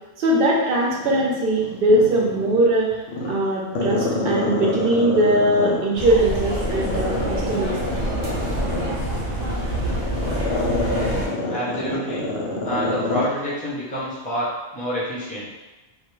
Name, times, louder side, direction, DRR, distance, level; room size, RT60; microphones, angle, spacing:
voice 1, 0.2-2.9 3.3-7.8 8.1-8.2, right 1 dB, 55° right, -3 dB, 0.7 m, -20 dB
Growling, 0.9-2.7 3.1-6.1 6.5-13.3 13.6-13.7, left 2 dB, 65° left, 0.7 m, -26 dB
sound 1, 5.9-11.3, right 1 dB, 85° right, 0.9 m, -27 dB
voice 2, 11.5-12.3 12.6-15.5, right 1 dB, 15° left, -7 dB, 0.3 m, -28 dB
2.2 x 2.1 x 3.0 m, 1.1 s
omnidirectional pair, 1.2 m